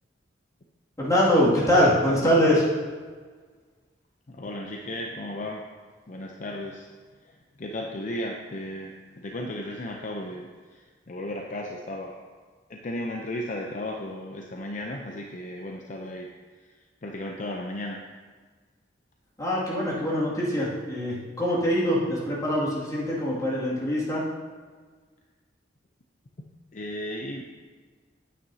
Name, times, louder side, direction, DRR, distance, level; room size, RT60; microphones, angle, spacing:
voice 1, 1.0-2.7 19.4-24.2, equal, 20° left, -7 dB, 2.2 m, -23 dB
voice 2, 4.3-5.6 6.1-6.9 7.2-12.2 12.7-16.3 16.6-16.8 17.0-18.0 26.7-27.4, left 1 dB, 45° left, 1 dB, 0.6 m, -35 dB
9.2 x 8.8 x 2.8 m, 1.5 s
head